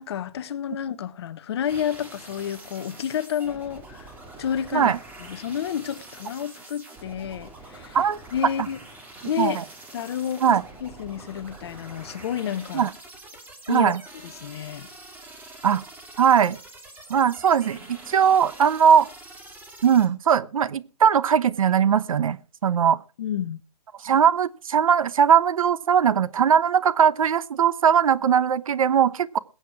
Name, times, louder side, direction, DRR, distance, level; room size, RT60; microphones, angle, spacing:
voice 1, 0.0-4.1 4.4-4.9 5.3-8.0 8.3-8.8 9.2-9.6 9.9-12.9 13.7-13.9 14.4-14.9 23.2-23.6, left 9 dB, 40° left, 0.9 m, -30 dB
sound 1, 1.7-20.1, right 2 dB, 10° right, 2.2 m, -45 dB
voice 2, 13.7-14.0 15.6-15.8 16.2-16.6 17.1-19.1 19.8-23.0 24.0-29.4, right 8 dB, 55° right, 0.9 m, -20 dB
21.0 x 8.1 x 4.7 m
hypercardioid pair, 155°, 21 cm